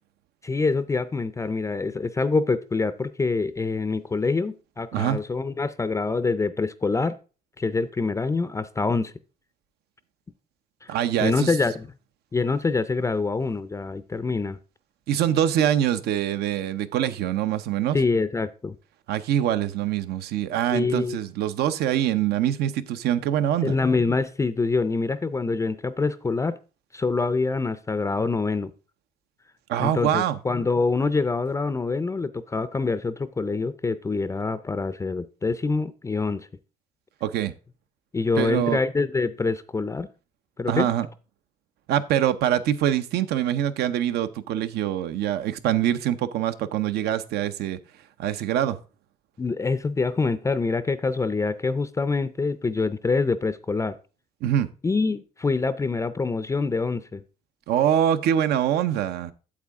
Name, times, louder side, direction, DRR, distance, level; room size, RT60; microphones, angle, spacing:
voice 1, 0.4-7.2 7.6-9.1 10.8-10.9 11.2-11.9 12.3-14.6 17.9-18.8 20.7-21.2 23.6-26.6 26.9-28.7 29.8-36.5 38.1-40.1 40.6-40.9 49.4-54.0 54.8-57.2, left 4 dB, 15° left, 0.4 m, -25 dB
voice 2, 10.9-11.5 15.1-18.0 19.1-23.7 29.7-30.4 37.2-37.5 38.4-38.8 40.7-41.1 41.9-47.8 48.2-48.8 54.4-54.7 57.7-59.3, right 10 dB, 75° right, 0.7 m, -24 dB
8.5 x 7.6 x 3.5 m
cardioid pair, 110°, 17 cm